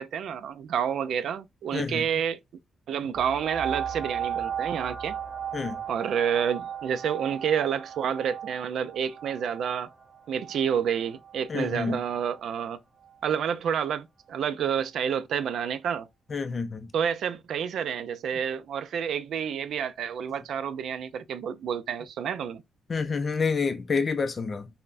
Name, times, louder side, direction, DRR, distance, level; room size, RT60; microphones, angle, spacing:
voice 1, 0.0-2.4 2.9-5.2 5.9-9.9 10.3-12.8 13.2-16.1 16.9-22.6, right 8 dB, 70° right, 0.3 m, -29 dB
sound 1, 3.1-12.4 13.0-13.1, right 8 dB, 25° right, 1.6 m, -36 dB
voice 2, 11.5-12.0 16.3-16.9 22.9-24.7, left 5 dB, 35° left, 0.4 m, -28 dB
5.5 x 2.1 x 2.4 m
cardioid pair, 150°, 0 cm